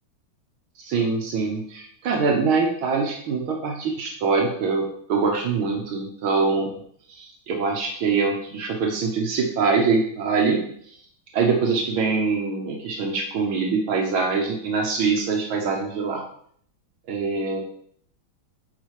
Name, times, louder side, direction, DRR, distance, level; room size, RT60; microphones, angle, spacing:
voice 1, 0.8-4.8 5.1-6.7 7.1-10.6 11.3-16.2 17.1-17.6, right 4 dB, 80° right, 1 dB, 1.9 m, -23 dB
8.7 x 5.0 x 4.8 m, 0.64 s
omnidirectional pair, 2.3 m